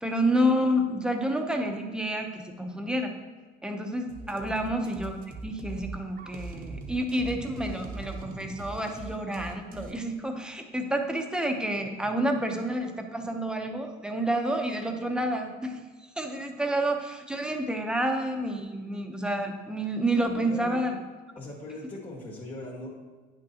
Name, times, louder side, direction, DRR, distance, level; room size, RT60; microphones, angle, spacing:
voice 1, 0.0-3.1 3.6-15.8 16.2-21.0, right 1 dB, 5° right, 3 dB, 0.8 m, -29 dB
sound 1, 4.1-9.9, right 3 dB, 50° right, 0.9 m, -41 dB
voice 2, 4.3-4.7 20.3-20.8 21.4-22.9, left 2 dB, 35° left, -5 dB, 1.8 m, -40 dB
9.8 x 6.2 x 2.9 m, 1.4 s
cardioid pair, 130°, 19 cm